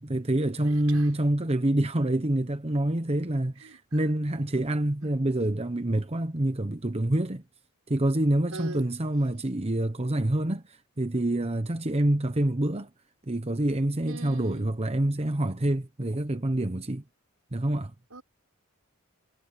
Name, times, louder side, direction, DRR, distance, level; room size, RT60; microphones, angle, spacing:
voice 1, 0.0-7.4 7.9-12.9 13.3-17.0 17.5-17.9, right 1 dB, 30° right, 1.0 m, -27 dB
voice 2, 0.6-1.1 3.6-4.0 8.5-8.9 14.0-14.8 18.1-18.2, right 2 dB, 80° right, 5.5 m, -42 dB
head